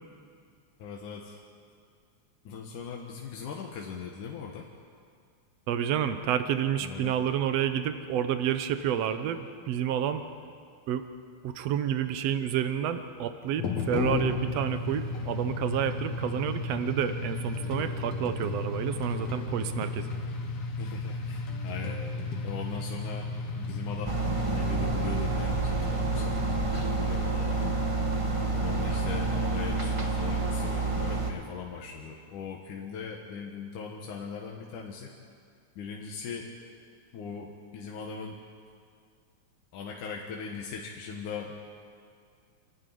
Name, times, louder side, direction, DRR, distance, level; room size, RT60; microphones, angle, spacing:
voice 1, 0.8-1.4 2.5-4.7 6.8-7.2 20.8-22.0 22.4-24.2 24.4-26.4 26.8-27.6 28.5-35.1 35.8-36.5 37.1-38.4 39.7-41.6, left 6 dB, 90° left, -1 dB, 2.9 m, -40 dB
voice 2, 5.7-10.2 10.9-11.0 11.4-20.1, right 9 dB, 65° right, 9 dB, 2.0 m, -29 dB
sound 1, 13.6-29.3, left 3 dB, 60° left, 2.8 m, -34 dB
sound 2, 24.0-31.3, right 3 dB, 20° right, 0.9 m, -29 dB
28.0 x 12.0 x 9.3 m, 2.2 s
omnidirectional pair, 3.4 m